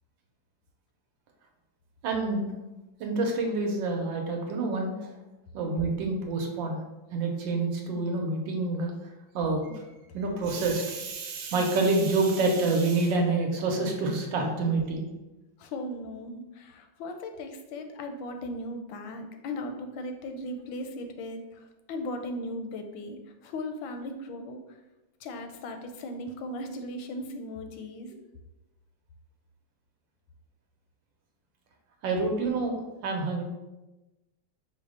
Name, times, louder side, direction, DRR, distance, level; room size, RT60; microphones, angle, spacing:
voice 1, 2.0-2.5 3.0-5.1 5.5-6.8 7.1-8.9 9.3-9.8 10.1-15.1 32.0-33.4, right 3 dB, 75° right, 2 dB, 1.4 m, -27 dB
voice 2, 15.6-24.6 25.2-28.1, left 1 dB, 85° left, 6 dB, 1.4 m, -37 dB
5.3 x 2.1 x 4.8 m, 1.0 s
omnidirectional pair, 2.1 m